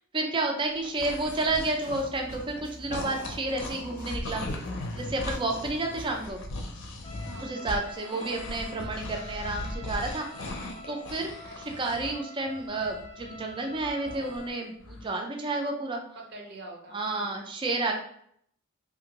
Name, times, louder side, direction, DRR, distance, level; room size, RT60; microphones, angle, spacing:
voice 1, 0.1-4.4 5.0-6.4 7.4-10.3 10.9-11.3 11.8-16.0 16.9-17.9, right 2 dB, 25° right, 2 dB, 0.4 m, -30 dB
sound 1, 0.7-2.6 2.9-12.2 12.4-14.5 14.8-15.1, left 2 dB, 65° left, 0.5 m, -39 dB
sound 2, 1.0-6.3, right 1 dB, 80° right, 1.1 m, -46 dB
Trumpet, 7.0-14.7, left 2 dB, 20° left, 0.8 m, -46 dB
voice 2, 7.3-7.9 11.4-11.8 16.2-17.4, right 2 dB, 55° right, 1 dB, 0.7 m, -46 dB
2.8 x 2.6 x 2.9 m, 0.66 s
head